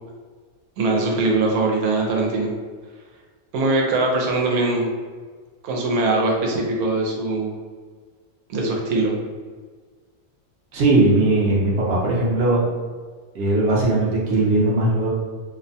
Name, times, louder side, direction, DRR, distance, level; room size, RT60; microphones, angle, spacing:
voice 1, 0.8-2.5 3.5-4.9 5.6-7.5 8.5-9.1, right 2 dB, 85° right, 0 dB, 1.1 m, -21 dB
voice 2, 10.7-12.6 13.3-15.1, right 2 dB, 60° right, -6 dB, 0.8 m, -19 dB
2.7 x 2.1 x 2.6 m, 1.5 s
omnidirectional pair, 1.5 m